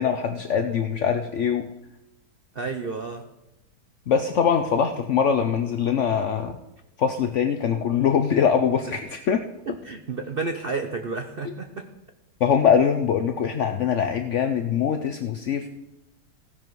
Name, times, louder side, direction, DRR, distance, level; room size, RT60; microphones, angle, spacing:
voice 1, 0.0-1.6 4.1-6.6 7.0-9.4 12.4-15.7, left 7 dB, 70° left, 6 dB, 0.7 m, -22 dB
voice 2, 2.5-3.2 8.9-9.0 9.7-11.9, right 4 dB, 75° right, 7 dB, 0.5 m, -31 dB
16.0 x 10.5 x 4.7 m, 0.94 s
omnidirectional pair, 2.1 m